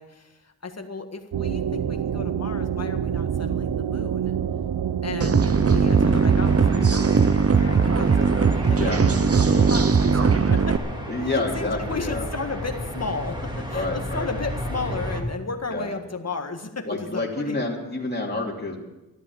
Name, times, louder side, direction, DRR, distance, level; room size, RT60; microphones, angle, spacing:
voice 1, 0.0-4.4 5.0-7.1 7.5-10.8 11.3-17.6, left 4 dB, 40° left, 4 dB, 1.7 m, -34 dB
sound 1, 1.3-6.6, right 9 dB, 75° right, 0.8 m, -27 dB
sound 2, 5.2-10.8, right 5 dB, 40° right, 0.7 m, -19 dB
sound 3, 5.3-15.2, equal, 10° right, 2.6 m, -33 dB
voice 2, 11.1-12.2 13.7-14.3 15.7-15.9 16.8-18.8, left 2 dB, 25° left, -2 dB, 2.8 m, -28 dB
14.0 x 12.0 x 7.2 m, 1.0 s
wide cardioid pair, 95°, 38 cm